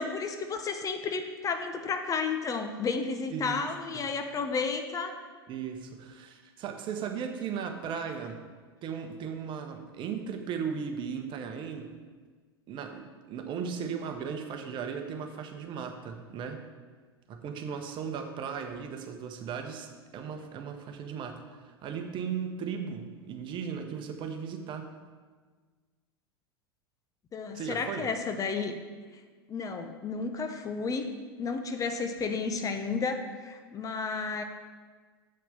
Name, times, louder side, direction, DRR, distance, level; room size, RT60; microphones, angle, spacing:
voice 1, 0.0-5.2 27.3-28.8 29.5-31.1 31.4-34.4, left 4 dB, 25° left, 6 dB, 0.9 m, -32 dB
voice 2, 3.3-4.1 5.5-8.4 8.8-11.9 12.7-16.6 17.3-24.9 27.5-28.1, right 6 dB, 35° right, 6 dB, 1.1 m, -37 dB
7.7 x 6.0 x 7.2 m, 1.5 s
figure-of-eight pair, 85°, 13 cm